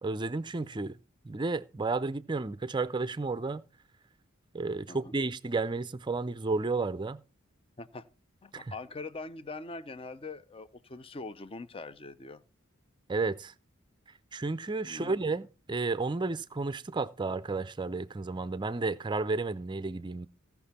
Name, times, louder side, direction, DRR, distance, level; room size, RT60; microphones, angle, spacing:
voice 1, 0.0-1.0 1.2-3.6 4.5-7.2 8.5-8.7 13.1-13.5 14.3-20.3, right 3 dB, 20° right, 0.5 m, -32 dB
voice 2, 8.4-12.4 14.8-15.2, left 3 dB, 25° left, 0.6 m, -42 dB
16.0 x 5.9 x 4.2 m
head